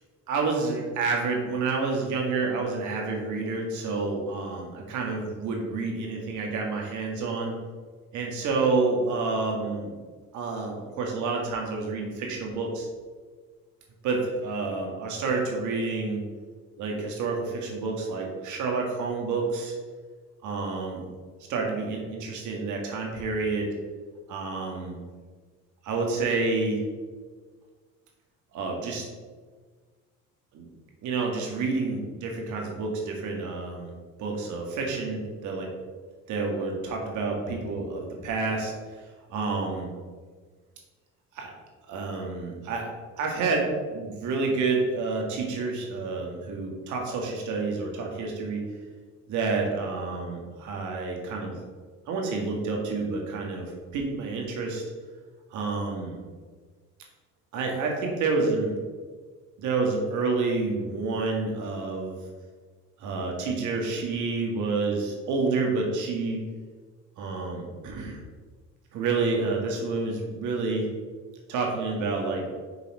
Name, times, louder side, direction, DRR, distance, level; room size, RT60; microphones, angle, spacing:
voice 1, 0.3-7.6 8.1-9.9 10.3-12.9 14.0-16.2 16.8-19.7 20.4-21.0 21.5-23.7 24.3-25.0 25.8-26.8 28.5-29.1 30.5-30.7 31.0-33.9 34.2-35.7 36.3-38.7 39.3-39.9 41.3-41.5 41.9-42.9 43.2-48.6 49.3-51.6 52.1-54.8 55.5-56.2 57.5-58.7 59.6-62.2 63.0-66.4 67.2-68.2 68.9-70.9 71.5-72.4, right 3 dB, 75° right, 0 dB, 1.9 m, -29 dB
6.8 x 4.1 x 5.4 m, 1.5 s
supercardioid pair, 85°, 30 cm